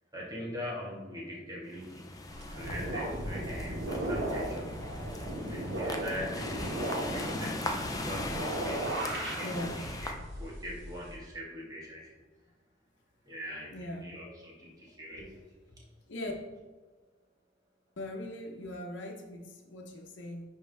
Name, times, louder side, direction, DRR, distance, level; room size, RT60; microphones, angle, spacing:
voice 1, 0.1-2.1 2.5-4.7 5.4-12.2 13.2-15.4, equal, 20° right, -4 dB, 1.7 m, -42 dB
sound 1, 1.7-10.1, left 1 dB, 20° left, 0.6 m, -39 dB
sound 2, 2.3-11.1, right 1 dB, 85° right, 1.8 m, -36 dB
voice 2, 9.4-9.8 13.7-14.1 16.1-16.3 18.0-20.4, left 1 dB, 80° left, 1 dB, 0.9 m, -40 dB
10.0 x 3.6 x 3.5 m, 1.3 s
head